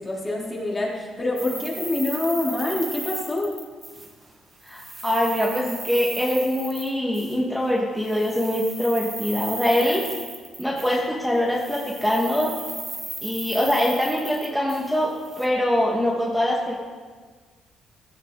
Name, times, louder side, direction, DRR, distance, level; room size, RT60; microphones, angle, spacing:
voice 1, 0.0-3.5, left 2 dB, 25° left, -4 dB, 4.2 m, -26 dB
sound 1, 1.4-4.3 4.6-7.4 8.0-11.2 11.5-15.5, right 2 dB, 20° right, 2.2 m, -36 dB
voice 2, 4.6-10.0 10.6-12.5 13.2-15.1 15.4-16.8, left 1 dB, ahead, -4 dB, 2.3 m, -23 dB
16.0 x 12.0 x 4.3 m, 1.5 s
cardioid pair, 90°, 0 cm